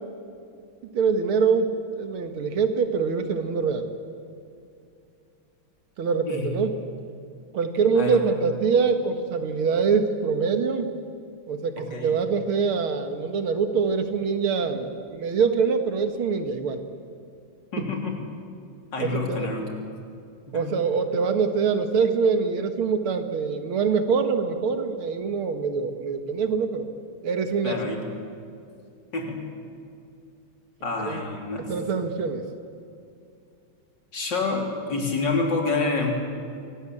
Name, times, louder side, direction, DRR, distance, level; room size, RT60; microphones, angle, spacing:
voice 1, 0.9-3.9 6.0-6.8 7.5-10.9 11.5-16.8 17.8-17.9 19.0-19.5 20.5-26.9 27.2-27.9 31.1-31.2 31.7-32.4, right 5 dB, 90° right, 7 dB, 2.5 m, -24 dB
voice 2, 6.3-6.7 7.9-8.2 11.8-12.1 17.7-18.2 18.9-19.7 20.5-20.6 27.6-28.0 29.1-29.4 30.8-31.7 34.1-36.1, left 3 dB, 55° left, 1 dB, 3.9 m, -28 dB
25.0 x 18.5 x 8.9 m, 2.5 s
omnidirectional pair, 2.3 m